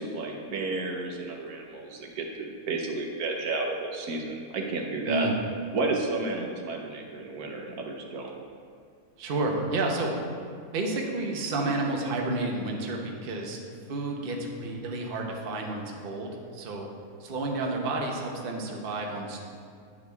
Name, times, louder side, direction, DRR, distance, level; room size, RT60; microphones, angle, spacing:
voice 1, 0.0-5.3 5.7-8.3, right 3 dB, 75° right, 1 dB, 1.3 m, -32 dB
voice 2, 9.2-10.1 10.7-13.6 13.9-16.9 17.2-19.4, right 2 dB, 45° right, 0 dB, 0.9 m, -30 dB
9.7 x 7.4 x 2.3 m, 2.2 s
omnidirectional pair, 1.6 m